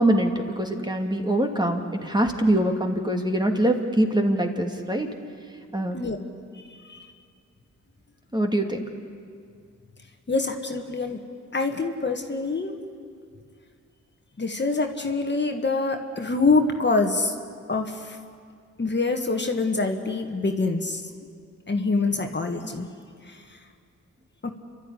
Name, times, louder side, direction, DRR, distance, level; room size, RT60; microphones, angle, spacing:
voice 1, 0.0-5.1 5.7-6.0 8.3-8.8, right 1 dB, 15° right, 3 dB, 2.3 m, -23 dB
voice 2, 6.5-7.1 10.3-11.2 11.5-12.8 14.4-17.3 17.7-18.2 18.8-21.0 21.7-22.9 23.3-23.4 24.4-24.5, left 3 dB, 35° left, 5 dB, 1.7 m, -25 dB
28.5 x 12.5 x 10.0 m, 2.2 s
cardioid pair, 60°, 30 cm